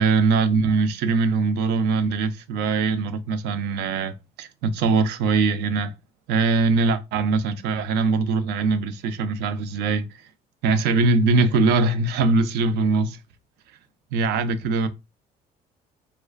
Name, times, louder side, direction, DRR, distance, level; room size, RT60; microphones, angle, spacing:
voice 1, 0.0-5.9 6.3-10.1 10.6-13.2 14.1-14.9, right 4 dB, 80° right, 0.4 m, -22 dB
2.4 x 2.3 x 2.3 m
cardioid pair, 110°, 17 cm